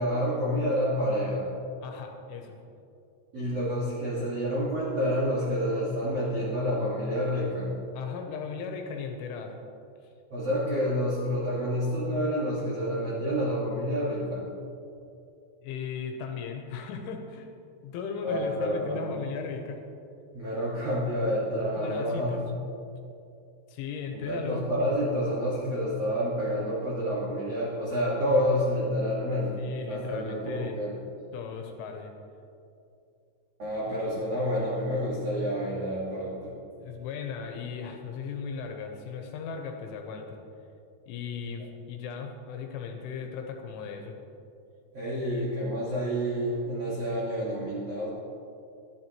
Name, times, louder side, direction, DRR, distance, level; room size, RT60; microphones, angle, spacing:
voice 1, 0.0-1.4 3.3-7.7 10.3-14.4 18.2-19.2 20.3-22.3 24.1-29.6 29.9-31.0 33.6-36.5 44.9-48.1, equal, 90° right, -8 dB, 1.3 m, -28 dB
voice 2, 1.8-2.6 7.9-9.6 15.6-17.5 17.8-19.8 21.8-22.4 23.7-24.6 29.6-30.8 31.3-32.1 33.9-34.1 36.8-40.4 41.1-44.2 45.3-45.4, left 6 dB, 80° left, 3 dB, 3.1 m, -37 dB
12.5 x 11.0 x 3.0 m, 2.6 s
omnidirectional pair, 5.8 m